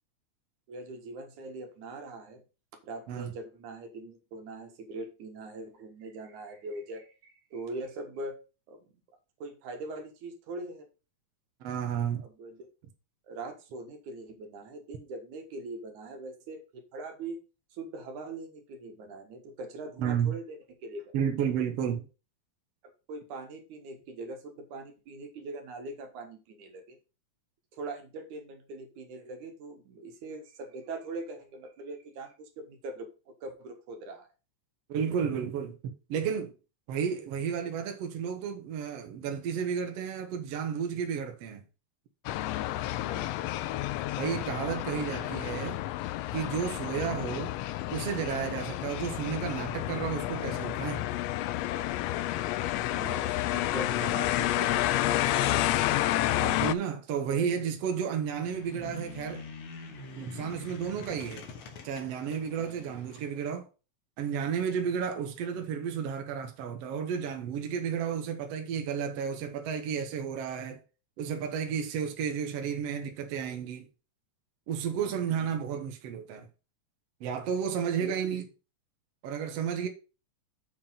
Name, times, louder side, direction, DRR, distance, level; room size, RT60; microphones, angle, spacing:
voice 1, 0.7-2.4 2.8-8.4 8.7-8.9 9.4-10.9 12.2-12.7 13.2-17.4 17.7-21.1 23.1-27.0 27.7-34.3 43.0-43.4 44.9-45.1 52.8-56.0 57.2-57.5 62.6-62.8 75.0-75.2 78.0-78.3, right 2 dB, 80° right, 2.9 m, -42 dB
voice 2, 11.6-12.2 20.0-20.3 21.1-22.1 34.9-36.5 36.9-41.6 44.2-45.8 46.3-47.5 47.9-51.0 56.4-59.5 60.2-61.5 61.8-63.7 64.2-70.8 71.2-73.9 74.7-76.5 77.2-78.4 79.2-79.9, right 7 dB, 65° right, 2.0 m, -32 dB
sound 1, 42.3-56.8, left 14 dB, 80° left, 1.5 m, -30 dB
sound 2, 58.3-63.3, left 4 dB, 60° left, 2.2 m, -45 dB
7.2 x 4.9 x 5.7 m
omnidirectional pair, 3.4 m